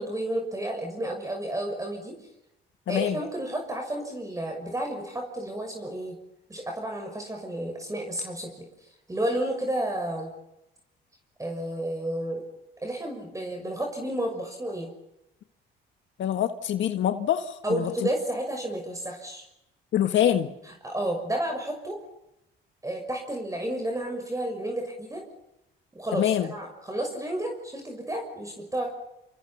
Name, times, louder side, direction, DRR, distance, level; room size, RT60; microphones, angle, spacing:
voice 1, 0.0-2.2 2.9-6.2 6.5-8.5 9.1-10.3 11.4-12.4 12.8-14.9 17.6-19.5 20.6-22.0 22.8-25.2 25.9-28.9, right 1 dB, 15° right, 2 dB, 6.4 m, -31 dB
voice 2, 2.9-3.2 16.2-17.9 19.9-20.5 26.2-26.5, left 10 dB, 70° left, 7 dB, 1.7 m, -25 dB
28.0 x 28.0 x 5.8 m, 0.86 s
cardioid pair, 90°, 20 cm